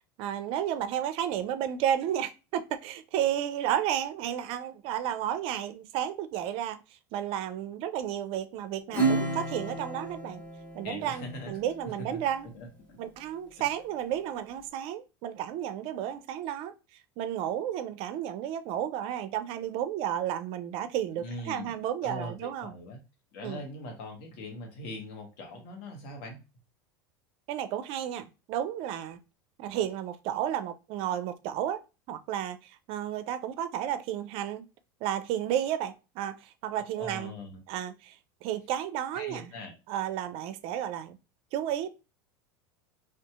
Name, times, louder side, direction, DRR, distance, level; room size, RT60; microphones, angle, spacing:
voice 1, 0.2-6.8 7.1-10.4 10.7-12.5 13.0-16.7 17.2-22.7 23.4-23.6 27.5-29.2 29.6-31.8 32.1-34.7 35.0-37.3 37.7-39.5 39.9-41.2 41.5-41.9, right 10 dB, 55° right, 0.4 m, -32 dB
Acoustic guitar / Strum, 8.9-11.8, right 3 dB, 15° left, 1.1 m, -31 dB
voice 2, 10.8-11.6 11.8-12.2 12.5-13.0 13.6-13.7 21.1-21.7 22.0-23.0 23.3-26.4 37.0-37.6 39.1-39.8, left 1 dB, 60° left, 1.1 m, -41 dB
2.7 x 2.4 x 2.2 m
hypercardioid pair, 95°, 12 cm